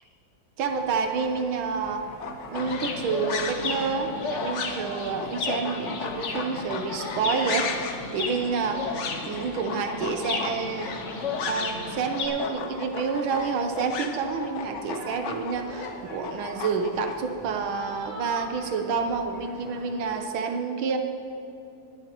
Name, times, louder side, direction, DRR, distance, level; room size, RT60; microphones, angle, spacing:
voice 1, 0.6-2.1 2.5-7.7 8.1-8.9 9.2-11.0 11.5-21.0, right 5 dB, 80° right, 5 dB, 1.7 m, -28 dB
sound 1, 0.7-20.2, right 1 dB, 25° right, 1.8 m, -45 dB
sound 2, 2.1-11.9 12.1-17.2, left 5 dB, 70° left, 0.7 m, -34 dB
Chirp tweet, 2.6-12.3, left 3 dB, 50° left, 1.0 m, -35 dB
18.5 x 11.0 x 3.0 m, 2.8 s
omnidirectional pair, 2.2 m